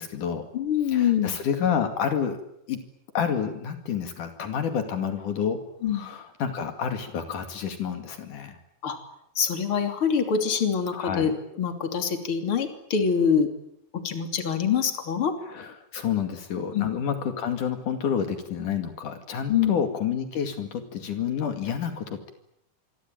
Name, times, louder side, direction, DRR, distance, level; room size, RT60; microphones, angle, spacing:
voice 1, 0.0-0.5 0.9-2.4 2.7-2.8 3.2-5.6 5.9-8.6 10.9-11.3 15.5-22.3, left 7 dB, 75° left, 7 dB, 3.8 m, -29 dB
voice 2, 0.5-1.3 5.8-6.1 8.8-9.0 9.4-13.5 13.9-15.3 16.7-16.9 19.5-19.8, left 7 dB, 40° left, 6 dB, 3.8 m, -25 dB
27.0 x 24.0 x 9.2 m, 0.76 s
omnidirectional pair, 3.7 m